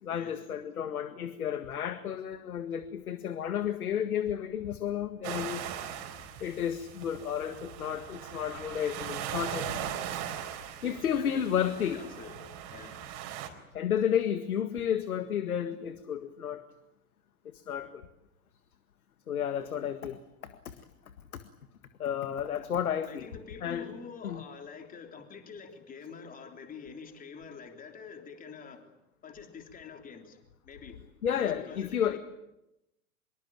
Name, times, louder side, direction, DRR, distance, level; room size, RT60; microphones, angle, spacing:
voice 1, 0.0-5.7 6.4-9.7 10.1-10.2 10.8-12.0 13.7-16.6 17.5-18.1 19.3-20.7 21.3-21.4 22.0-23.3 23.6-23.8 24.2-24.4 31.2-32.2, left 9 dB, 70° left, 10 dB, 1.9 m, -32 dB
sound 1, 5.2-13.5, right 10 dB, 40° right, 4.4 m, -39 dB
voice 2, 11.0-12.9 23.1-28.9 29.2-31.0 31.3-32.2, left 5 dB, 20° left, 5 dB, 3.3 m, -46 dB
25.0 x 23.0 x 8.9 m, 0.90 s
figure-of-eight pair, 105°, 45 cm